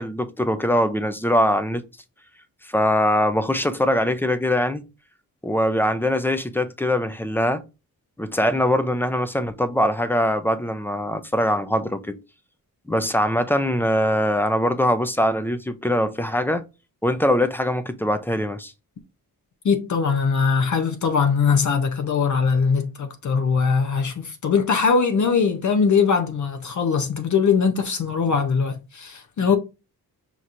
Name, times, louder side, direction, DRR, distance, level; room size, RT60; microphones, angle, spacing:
voice 1, 0.0-1.8 2.6-4.8 5.4-7.6 8.2-12.2 12.9-16.6 17.0-18.7, left 1 dB, 5° left, 0.3 m, -22 dB
voice 2, 19.6-29.6, left 5 dB, 55° left, 0.6 m, -21 dB
5.4 x 3.0 x 2.5 m
wide cardioid pair, 145°, 37 cm